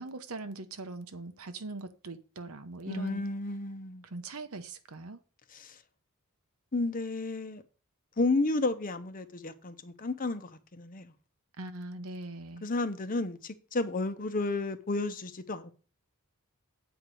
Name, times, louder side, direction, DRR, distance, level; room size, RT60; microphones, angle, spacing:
voice 1, 0.0-3.2 4.1-5.2 11.6-12.7, right 2 dB, 75° right, 1.0 m, -41 dB
voice 2, 2.9-4.1 5.5-5.7 6.7-7.6 8.2-11.1 12.6-15.7, left 2 dB, 40° left, 0.8 m, -32 dB
8.1 x 4.7 x 6.5 m
head